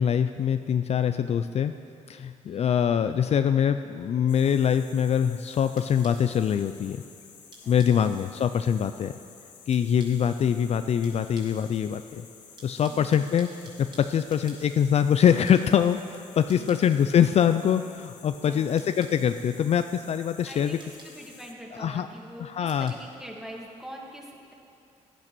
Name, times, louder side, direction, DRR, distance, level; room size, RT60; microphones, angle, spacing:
voice 1, 0.0-1.7 2.1-7.0 7.7-9.1 9.7-12.3 12.6-20.8 21.8-22.1 22.4-22.9, left 8 dB, 50° left, 9 dB, 0.4 m, -24 dB
voice 2, 2.5-2.9 7.6-8.1 16.6-16.7 18.4-19.0 20.5-24.5, equal, 5° right, -1 dB, 2.1 m, -44 dB
sound 1, 4.3-21.5, left 6 dB, 70° left, 1.3 m, -52 dB
sound 2, 5.1-23.9, right 2 dB, 35° right, 3.5 m, -56 dB
16.5 x 11.0 x 6.1 m, 2.5 s
cardioid pair, 110°, 13 cm